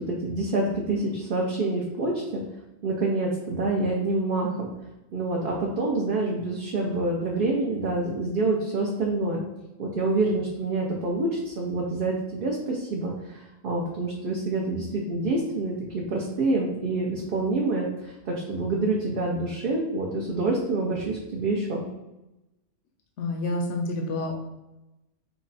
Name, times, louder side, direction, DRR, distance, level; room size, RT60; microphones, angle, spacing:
voice 1, 0.0-2.4 2.8-4.7 5.1-9.4 9.8-21.8, right 2 dB, 55° right, -2 dB, 0.7 m, -27 dB
voice 2, 23.2-24.4, left 2 dB, 75° left, 1 dB, 0.9 m, -28 dB
4.7 x 2.2 x 4.0 m, 0.97 s
omnidirectional pair, 1.2 m